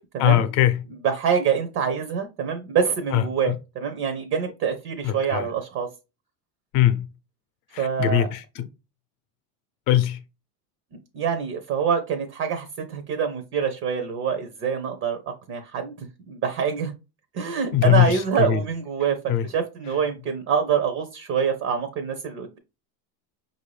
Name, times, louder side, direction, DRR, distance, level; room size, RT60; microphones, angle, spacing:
voice 1, 0.2-0.8 3.1-3.5 5.0-5.5 6.7-7.1 7.7-8.7 9.9-10.2 17.7-18.6 19.3-19.5, left 12 dB, 50° left, 0.7 m, -21 dB
voice 2, 1.0-5.9 7.8-8.3 11.1-15.2 15.5-16.9 17.3-19.2 19.4-22.6, right 7 dB, 30° right, 0.5 m, -25 dB
5.1 x 2.6 x 3.2 m
supercardioid pair, 145°, 49 cm